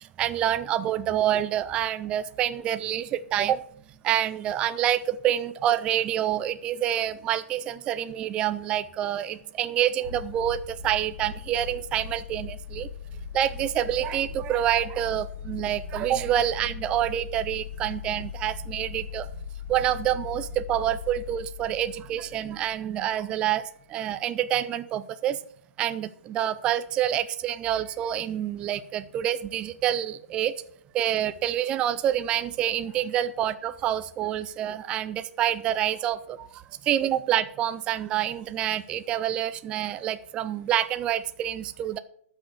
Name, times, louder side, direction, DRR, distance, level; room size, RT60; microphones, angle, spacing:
voice 1, 0.0-3.6 4.0-12.9 13.3-19.3 19.7-23.6 23.9-25.4 25.8-30.5 30.9-42.0, right 11 dB, 10° right, 11 dB, 0.3 m, -27 dB
sound 1, 10.0-23.4, left 6 dB, 55° left, 5.0 m, -39 dB
12.5 x 6.2 x 6.5 m, 0.62 s
hypercardioid pair, 165°, 8 cm